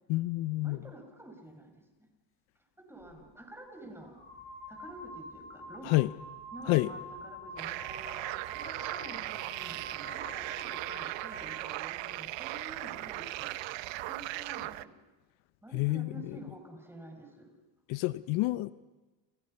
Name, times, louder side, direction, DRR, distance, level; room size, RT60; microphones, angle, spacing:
voice 1, 0.1-0.8 5.8-6.1 6.7-6.9 15.7-16.2 17.9-18.7, left 19 dB, 65° left, 15 dB, 0.8 m, -28 dB
voice 2, 0.6-2.1 2.8-4.2 4.7-6.0 6.5-13.7 14.0-14.9 15.6-17.5, right 1 dB, 5° right, 3 dB, 6.1 m, -49 dB
sound 1, 3.0-3.2 4.0-11.7, equal, 25° left, 7.7 m, -47 dB
sound 2, 7.6-14.8, right 18 dB, 60° right, 0.9 m, -38 dB
29.5 x 29.0 x 5.6 m, 1.2 s
cardioid pair, 125°, 49 cm